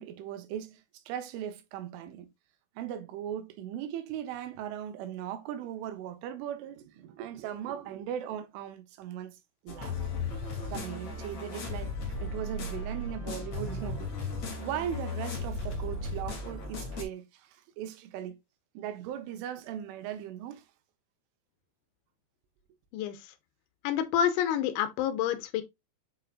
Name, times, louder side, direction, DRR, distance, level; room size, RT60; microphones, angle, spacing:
voice 1, 0.0-2.3 2.8-9.4 9.6-9.9 10.7-11.9 12.2-14.3 14.6-18.4 18.7-20.6, right 10 dB, 90° right, 3.5 m, -38 dB
sound 1, 9.7-17.0, left 2 dB, 40° left, 2.8 m, -36 dB
voice 2, 23.8-25.6, left 9 dB, 85° left, 3.3 m, -28 dB
8.1 x 5.9 x 2.4 m
omnidirectional pair, 5.4 m